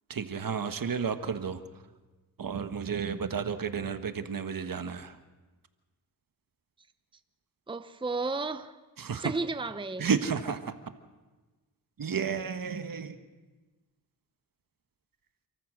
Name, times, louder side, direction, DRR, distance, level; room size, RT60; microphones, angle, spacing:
voice 1, 0.1-1.6 2.4-5.2 9.0-9.3 10.0-10.7 12.0-13.2, right 6 dB, 60° right, 9 dB, 1.5 m, -32 dB
voice 2, 7.7-8.8 9.2-10.1, right 3 dB, 15° right, 11 dB, 0.8 m, -33 dB
28.5 x 14.5 x 6.4 m, 1.3 s
cardioid pair, 55°, 38 cm